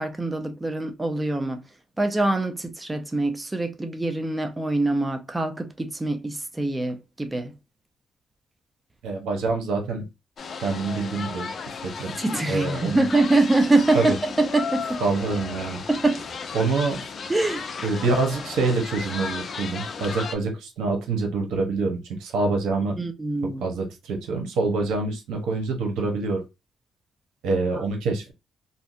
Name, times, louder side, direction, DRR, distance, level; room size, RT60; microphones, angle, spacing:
voice 1, 0.0-1.6 2.0-7.5 12.2-14.2 14.5-15.0 15.9-16.2 17.3-17.7 23.0-23.6, right 2 dB, 15° right, 0.4 m, -24 dB
voice 2, 9.0-10.1 10.6-11.5 11.8-12.1 12.5-13.1 13.9-14.1 15.0-15.8 16.5-17.1 17.8-23.0 23.6-26.4 27.4-28.3, right 3 dB, 85° right, 0.8 m, -26 dB
sound 1, 10.4-20.4, left 5 dB, 50° left, 0.4 m, -34 dB
2.6 x 2.1 x 2.4 m
cardioid pair, 90°, 0 cm